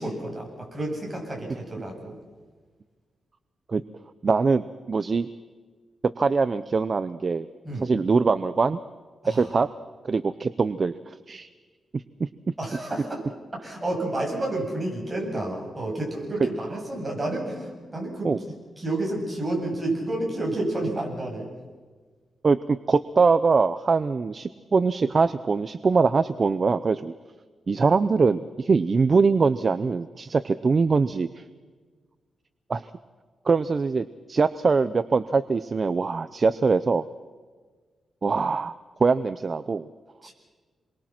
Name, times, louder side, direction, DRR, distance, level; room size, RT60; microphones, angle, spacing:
voice 1, 0.0-2.2 7.6-7.9 9.2-9.5 12.6-13.2 13.6-21.5 40.2-40.3, right 1 dB, 15° right, -1 dB, 7.8 m, -30 dB
voice 2, 4.2-5.3 6.0-7.5 7.8-8.8 9.3-9.7 10.0-11.5 11.9-12.3 18.2-18.4 22.4-27.1 27.7-31.4 32.7-32.9 33.5-37.0 38.2-38.7 39.0-39.9 40.2-40.3, right 4 dB, 35° right, 13 dB, 0.7 m, -23 dB
28.5 x 23.0 x 6.0 m, 1.5 s
wide cardioid pair, 135°, 0 cm